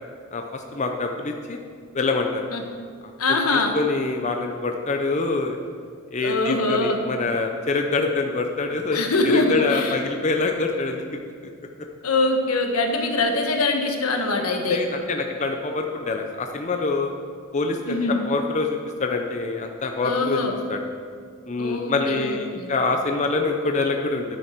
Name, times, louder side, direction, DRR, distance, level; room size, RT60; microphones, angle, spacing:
voice 1, 0.3-1.6 1.9-2.4 3.5-5.6 6.1-11.0 14.7-17.1 17.5-20.8 21.5-24.2, left 3 dB, 35° left, 3 dB, 0.6 m, -25 dB
voice 2, 3.2-3.7 6.2-7.0 8.9-9.9 12.0-14.8 17.9-18.2 20.0-20.5 21.6-22.7, left 2 dB, 90° left, 3 dB, 1.4 m, -23 dB
9.8 x 9.6 x 4.5 m, 2.2 s
head